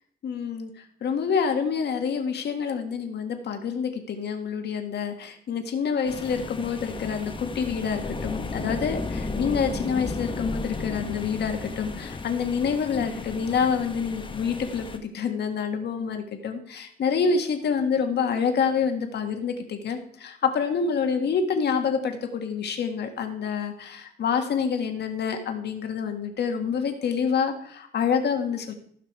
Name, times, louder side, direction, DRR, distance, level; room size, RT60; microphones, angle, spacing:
voice 1, 0.2-0.7 1.0-28.7, left 6 dB, 70° left, 5 dB, 1.7 m, -27 dB
sound 1, 6.1-15.0, left 3 dB, 30° left, 1.1 m, -34 dB
15.0 x 6.0 x 4.7 m, 0.66 s
cardioid pair, 125°, 18 cm